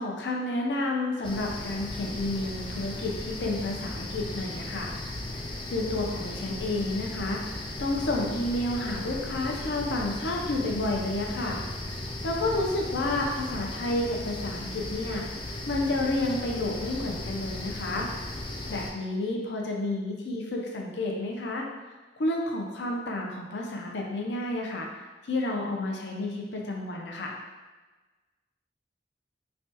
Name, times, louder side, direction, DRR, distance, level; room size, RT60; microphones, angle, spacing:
voice 1, 0.0-4.9 5.3-5.4 5.7-7.4 7.8-11.6 12.2-15.3 15.7-18.1 18.7-21.6 22.2-24.9 25.3-27.3, left 2 dB, 75° left, 0 dB, 0.5 m, -30 dB
sound 1, 1.2-18.9, left 1 dB, 30° left, 0.3 m, -36 dB
3.2 x 2.2 x 2.8 m, 1.2 s
head